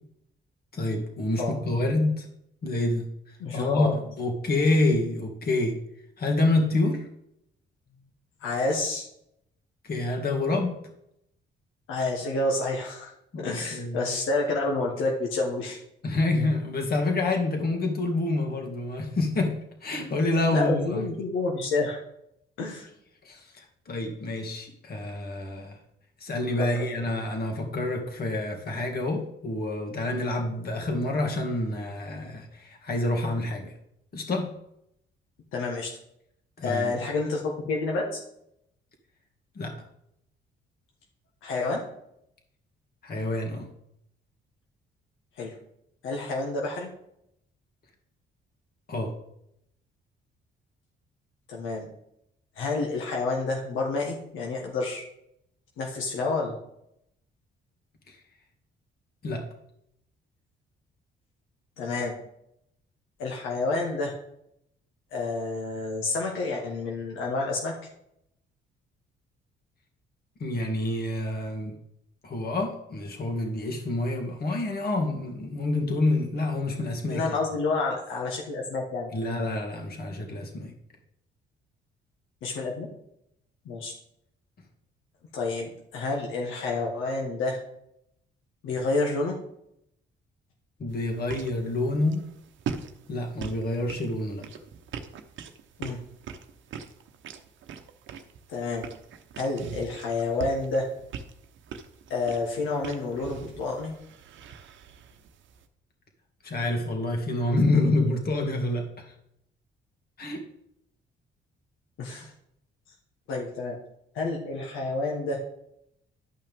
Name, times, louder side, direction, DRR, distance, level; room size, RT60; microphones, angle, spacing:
voice 1, 0.7-2.3 2.6-3.1 3.5-5.8 6.2-7.1 9.8-10.8 13.3-14.0 16.0-19.5 19.8-21.0 23.2-25.8 26.2-33.7 34.1-34.5 36.6-36.9 39.6-39.7 43.0-43.7 48.9-49.1 58.1-58.2 59.2-59.4 70.4-71.7 72.2-77.2 79.1-80.7 90.8-92.2 93.1-94.5 106.4-108.9 110.2-110.4, left 2 dB, 50° left, 1 dB, 2.2 m, -27 dB
voice 2, 3.4-3.9 8.4-9.0 11.9-13.1 13.4-15.8 20.5-22.0 22.6-22.9 26.6-26.8 35.5-35.9 36.6-38.2 41.4-41.8 45.4-45.5 46.0-46.9 51.5-51.9 52.6-55.0 55.8-56.6 61.8-62.1 63.2-64.1 65.1-67.9 77.1-79.1 82.4-82.9 83.6-83.9 85.3-87.6 88.6-89.4 95.8-96.0 98.5-98.9 99.4-100.9 102.1-103.9 112.0-112.3 113.3-113.8 114.1-115.4, left 3 dB, 85° left, 0 dB, 1.4 m, -29 dB
sound 1, 90.9-105.7, right 6 dB, 70° right, 0.9 m, -42 dB
11.5 x 5.6 x 3.6 m, 0.78 s
cardioid pair, 90°, 20 cm